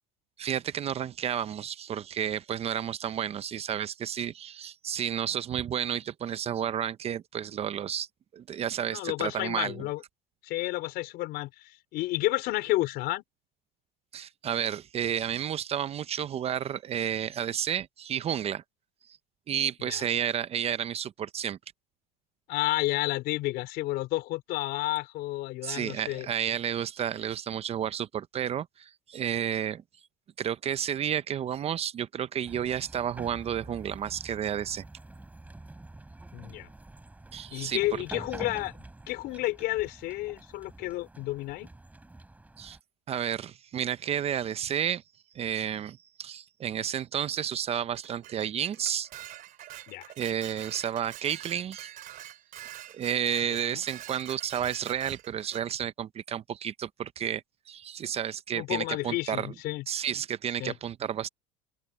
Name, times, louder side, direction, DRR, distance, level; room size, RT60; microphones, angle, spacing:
voice 1, 0.4-8.1 8.3-9.9 14.1-18.6 19.5-21.6 25.6-29.8 30.4-34.8 37.3-38.0 42.6-42.8 43.1-45.0 45.3-49.1 50.2-51.9 52.9-59.5 59.9-61.3, right 9 dB, 35° right, 0.8 m, -31 dB
voice 2, 8.9-10.0 10.4-13.2 19.8-20.0 22.5-26.3 36.3-36.7 37.5-38.7 39.1-41.7 49.9-50.0 53.5-53.8 58.5-59.8 60.6-60.8, left 18 dB, 60° left, 4.5 m, -31 dB
sound 1, 32.4-42.8, right 2 dB, 10° right, 3.8 m, -47 dB
Dishes pots and pans, 47.9-55.7, right 13 dB, 50° right, 3.1 m, -45 dB
open air
supercardioid pair, 115°, 18 cm